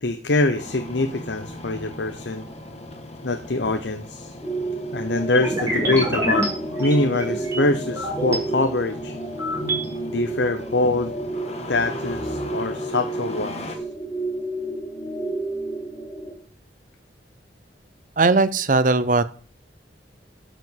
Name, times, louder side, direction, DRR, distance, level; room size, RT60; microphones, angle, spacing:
voice 1, 0.0-2.4 3.2-4.3 4.9-6.5 6.8-9.2 10.1-11.1 11.7-13.8, left 2 dB, 80° left, 7 dB, 0.9 m, -24 dB
Engine starting, 0.5-13.8, left 1 dB, 35° left, 1.6 m, -38 dB
sound 1, 4.4-16.3, right 2 dB, 15° left, 3.6 m, -31 dB
sound 2, 5.3-8.4 8.9-9.9, equal, 15° right, 4.6 m, -27 dB
voice 2, 18.2-19.2, right 3 dB, 45° right, 14 dB, 0.7 m, -18 dB
12.0 x 5.1 x 7.4 m, 0.44 s
head